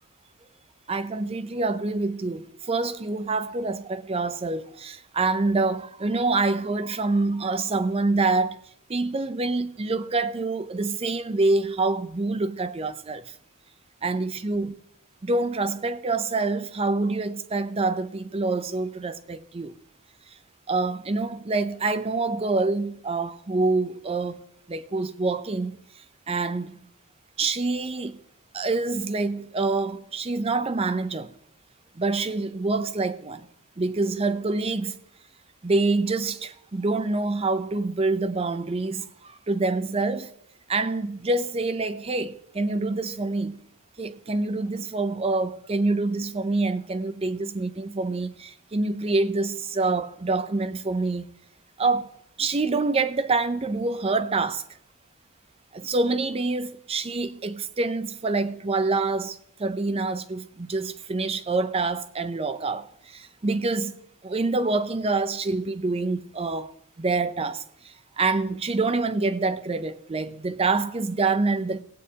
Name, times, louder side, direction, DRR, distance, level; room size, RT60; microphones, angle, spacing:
voice 1, 0.9-8.6 8.9-13.4 14.0-14.7 15.2-19.8 20.3-20.4 20.7-26.8 27.4-28.2 28.5-31.3 32.0-33.5 33.8-35.0 35.6-40.3 40.7-43.6 44.0-51.3 51.8-52.1 52.4-54.6 55.7-71.8, right 3 dB, 25° right, 0.5 m, -26 dB
18.5 x 8.5 x 2.8 m
head